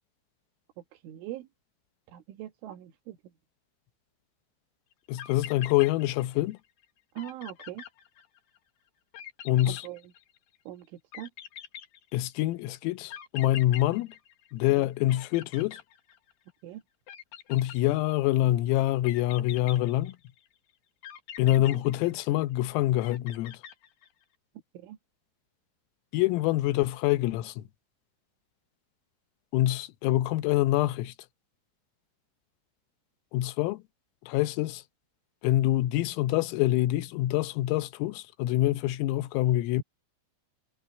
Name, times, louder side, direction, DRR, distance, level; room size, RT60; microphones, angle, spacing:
voice 1, 1.0-1.5 2.1-3.2 7.2-7.8 9.7-10.0 10.7-10.9 11.1-11.3 14.8-14.9 16.6-16.8 21.6-21.8 24.8-25.0, right 13 dB, 70° right, 4.1 m, -41 dB
sound 1, 4.9-5.0 5.2-6.5 6.8-6.9 7.2-8.6 9.1-10.6 11.1-12.5 13.1-14.8 15.1-16.5 17.1-18.3 19.1-20.5 21.0-22.6 23.0-24.2, left 10 dB, 60° left, 2.9 m, -44 dB
voice 2, 5.1-6.6 9.5-9.8 12.1-14.1 14.5-15.8 17.5-20.2 21.4-23.6 26.1-27.7 29.5-31.1 33.3-33.8 34.2-34.8 35.4-39.8, left 15 dB, 90° left, 3.6 m, -26 dB
omnidirectional pair, 5.9 m